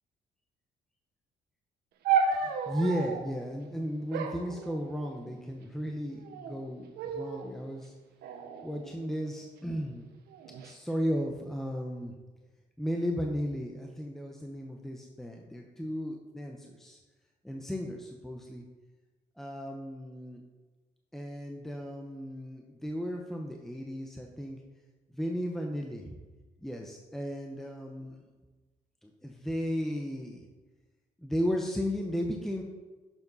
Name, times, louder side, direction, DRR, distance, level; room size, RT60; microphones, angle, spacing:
sound 1, 2.0-3.3 4.1-5.3 6.1-6.6 7.0-7.5 8.2-9.5 10.3-10.7, right 5 dB, 85° right, 1.1 m, -33 dB
voice 1, 2.3-7.9 8.6-10.1 10.6-12.1 12.8-17.0 17.4-18.7 19.4-20.4 21.1-24.6 25.1-26.2 26.6-28.2 29.0-30.4 31.2-32.6, equal, ahead, 1 dB, 0.8 m, -35 dB
11.5 x 7.2 x 4.0 m, 1.3 s
cardioid pair, 120°, 16 cm